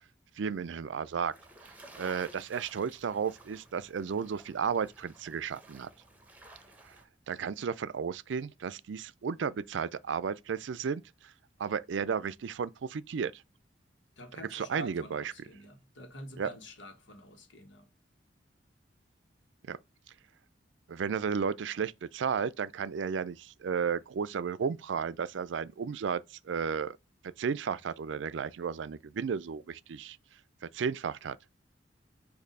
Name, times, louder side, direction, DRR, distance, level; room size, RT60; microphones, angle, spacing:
voice 1, 0.4-1.3 2.0-5.9 6.9-7.0 7.3-11.3 11.6-13.4 14.4-15.3 16.4-16.5 19.7-19.8 20.9-27.0 27.2-30.2 30.6-31.4, right 6 dB, 80° right, 0.4 m, -33 dB
sound 1, 1.3-7.0, right 2 dB, 10° right, 1.0 m, -54 dB
voice 2, 14.2-17.9, equal, 90° left, 1.4 m, -47 dB
6.7 x 2.7 x 5.2 m
head